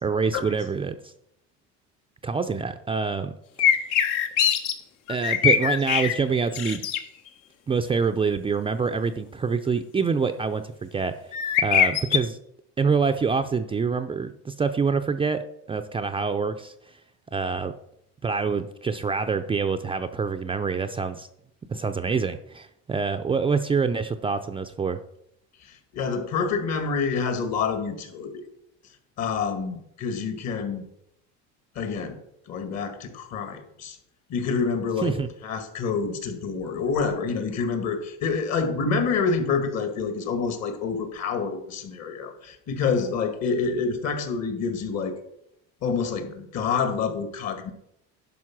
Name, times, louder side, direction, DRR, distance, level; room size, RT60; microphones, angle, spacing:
voice 1, 0.0-1.1 2.2-3.3 3.6-3.7 5.1-6.8 7.7-11.2 11.6-12.4 12.8-15.4 15.7-16.7 17.3-17.7 18.2-21.3 21.7-25.0 35.0-35.3, right 5 dB, 15° right, 7 dB, 0.4 m, -26 dB
sound 1, 3.6-4.7 5.1-6.1 6.5-7.0 11.3-12.2, left 9 dB, 70° left, 1.3 m, -21 dB
voice 2, 25.6-28.4 29.2-30.8 31.8-32.2 32.5-34.0 34.3-35.2 35.4-45.2 45.8-47.7, left 5 dB, 55° left, 8 dB, 2.0 m, -27 dB
11.0 x 5.3 x 6.0 m, 0.77 s
cardioid pair, 125°, 32 cm